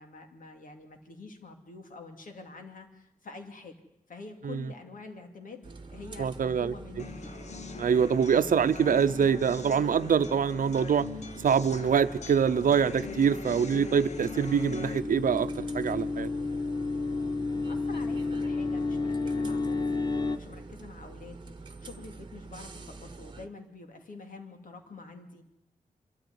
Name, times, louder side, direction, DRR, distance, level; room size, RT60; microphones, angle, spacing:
voice 1, 0.0-3.8 4.1-7.4 17.4-25.4, left 3 dB, 80° left, 5 dB, 2.7 m, -47 dB
sound 1, 5.6-23.5, right 3 dB, 35° right, 1.2 m, -46 dB
voice 2, 6.2-6.7 7.8-11.1 11.4-16.3, right 7 dB, 90° right, 13 dB, 0.7 m, -25 dB
sound 2, 7.0-15.0, left 5 dB, 55° left, 1.1 m, -42 dB
sound 3, 13.0-20.4, left 3 dB, 30° left, 1.0 m, -32 dB
25.0 x 13.5 x 9.7 m, 0.89 s
wide cardioid pair, 175°, 14 cm